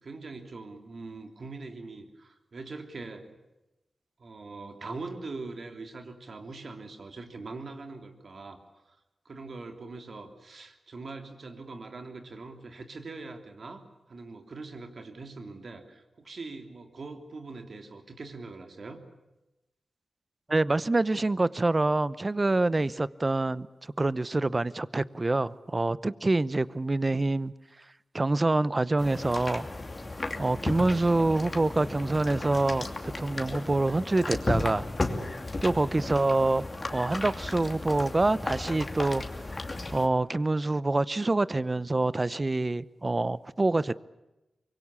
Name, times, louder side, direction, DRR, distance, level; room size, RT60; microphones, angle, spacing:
voice 1, 0.0-3.4 4.2-8.8 9.2-13.8 14.1-19.0, right 3 dB, 60° right, 5 dB, 3.2 m, -42 dB
voice 2, 20.5-23.7 24.0-27.5 28.1-29.7 30.4-34.8 35.6-36.6 36.9-39.2 39.9-44.0, right 2 dB, 30° right, 18 dB, 0.8 m, -26 dB
sound 1, 29.0-40.1, left 2 dB, 35° left, 2.7 m, -34 dB
24.5 x 23.0 x 8.4 m, 0.99 s
wide cardioid pair, 80°, 0 cm